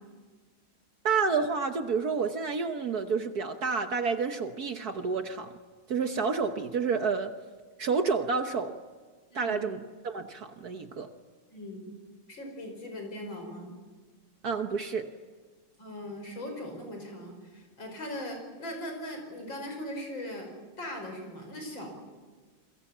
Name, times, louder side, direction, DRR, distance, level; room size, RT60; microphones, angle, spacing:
voice 1, 1.0-5.5 5.9-7.3 7.8-8.7 9.3-9.8 10.0-11.1 14.4-15.1, right 5 dB, 55° right, 7 dB, 1.5 m, -29 dB
voice 2, 11.5-11.9 12.3-13.8 15.8-20.5 20.8-21.9, left 1 dB, 65° left, 4 dB, 6.4 m, -39 dB
28.5 x 22.5 x 7.4 m, 1.4 s
omnidirectional pair, 2.3 m